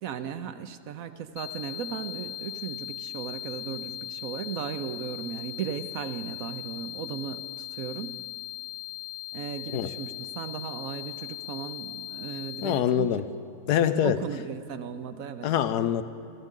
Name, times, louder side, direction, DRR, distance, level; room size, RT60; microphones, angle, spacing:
voice 1, 0.0-8.2 9.3-13.1 14.0-15.5, right 8 dB, 65° right, 10 dB, 1.0 m, -36 dB
sound 1, 1.4-12.8, left 15 dB, 65° left, 0.9 m, -39 dB
voice 2, 12.6-13.3 13.7-14.2 15.4-16.0, left 10 dB, 80° left, 11 dB, 1.2 m, -24 dB
29.5 x 13.0 x 3.7 m, 2.5 s
omnidirectional pair, 1.7 m